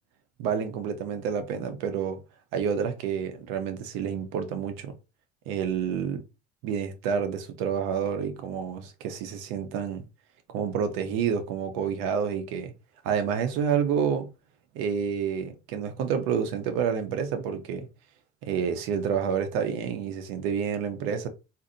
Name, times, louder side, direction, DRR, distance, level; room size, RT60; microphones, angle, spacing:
voice 1, 0.4-2.2 2.5-4.9 5.5-6.2 6.6-10.0 10.5-12.7 13.0-14.3 14.7-17.9 18.4-21.3, right 7 dB, 90° right, 0.7 m, -29 dB
4.0 x 2.6 x 2.6 m
cardioid pair, 125°, 20 cm